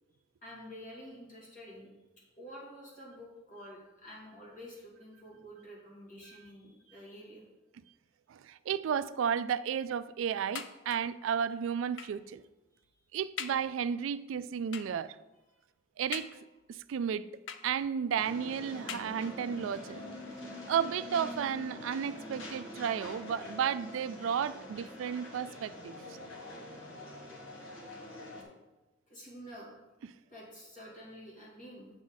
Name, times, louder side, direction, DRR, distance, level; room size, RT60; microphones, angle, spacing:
voice 1, 0.4-1.9 2.4-7.4 12.7-12.8 27.8-27.9 29.1-29.7 30.1-31.9, equal, 45° left, 2.7 m, -49 dB
voice 2, 8.3-12.4 13.1-15.2 16.0-16.3 16.9-17.3 17.6-20.0 20.7-25.9, right 7 dB, 90° right, 0.3 m, -33 dB
sound 1, 10.5-11.2 12.0-12.3 12.8-12.9 13.4-13.7 14.7-15.1 16.1-16.7 17.5-18.1 18.9-19.6 20.4-20.5 20.8-20.9, left 8 dB, 70° left, 0.5 m, -43 dB
sound 2, 18.2-28.4, left 1 dB, 90° left, 1.6 m, -45 dB
8.2 x 6.2 x 3.9 m
head